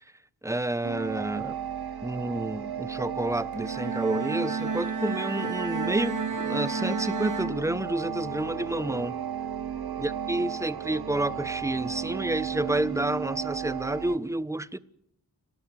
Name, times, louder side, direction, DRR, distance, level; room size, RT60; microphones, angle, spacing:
voice 1, 0.4-1.6 2.0-9.2 10.0-14.8, right 1 dB, 10° right, 1.0 m, -30 dB
sound 1, 0.8-14.2, right 8 dB, 80° right, 1.6 m, -34 dB
Bowed string instrument, 3.5-8.2, right 4 dB, 55° right, 2.1 m, -32 dB
29.5 x 13.0 x 8.2 m
cardioid pair, 70°, 37 cm